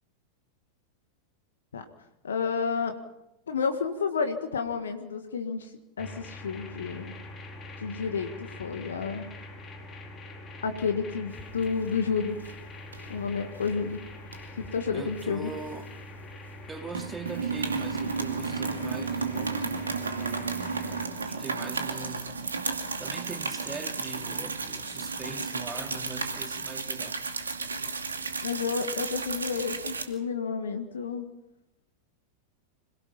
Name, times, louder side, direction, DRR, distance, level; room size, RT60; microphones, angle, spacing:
voice 1, 2.2-3.0 3.5-7.1 7.8-9.2 10.6-12.4 13.1-14.0 14.6-15.5 28.4-31.3, left 5 dB, 65° left, 1.8 m, -30 dB
sound 1, 6.0-21.1, left 2 dB, 25° left, 4.3 m, -44 dB
sound 2, 11.4-12.0 12.3-12.5 12.9-13.7 14.3-16.2 16.5-16.6 16.9-30.0, right 4 dB, 75° right, 2.5 m, -33 dB
voice 2, 14.9-15.9 16.7-22.5 23.0-27.2, right 4 dB, 15° right, 2.5 m, -42 dB
26.5 x 18.5 x 5.7 m
figure-of-eight pair, 90°, 0 cm